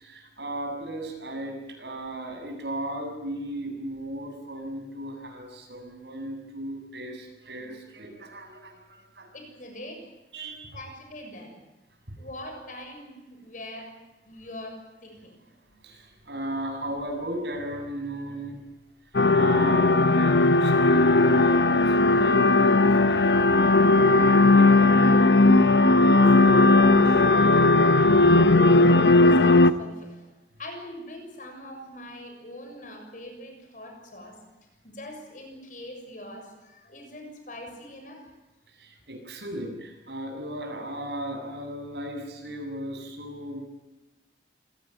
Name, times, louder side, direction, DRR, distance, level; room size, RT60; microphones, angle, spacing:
voice 1, 0.0-9.3 10.3-10.6 15.8-18.6 19.3-27.2 38.7-43.7, right 1 dB, 75° right, 3 dB, 7.3 m, -36 dB
voice 2, 9.3-10.1 10.7-11.6 12.2-14.0 14.2-15.4 28.6-29.1 29.4-30.3 30.6-34.4 34.8-38.3, left 1 dB, 45° left, 4 dB, 6.9 m, -42 dB
sound 1, 19.1-29.7, left 2 dB, 75° left, 1.1 m, -18 dB
27.0 x 19.0 x 9.2 m, 1.0 s
head